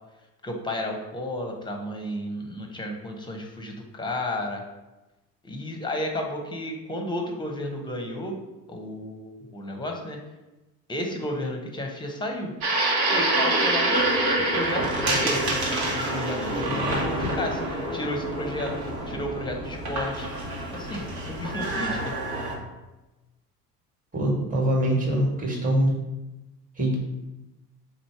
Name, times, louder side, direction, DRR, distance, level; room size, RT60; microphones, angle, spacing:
voice 1, 0.4-4.6 5.4-8.4 8.7-10.2 10.9-12.5 13.1-18.7 19.1-20.3 20.7-22.1, left 1 dB, 10° left, 2 dB, 0.8 m, -32 dB
sound 1, 12.6-22.5, right 1 dB, 65° right, 1.2 m, -26 dB
voice 2, 24.1-25.9 26.8-27.0, right 1 dB, 15° right, -1 dB, 1.4 m, -23 dB
3.9 x 2.6 x 4.6 m, 1.0 s
figure-of-eight pair, 65°, 47 cm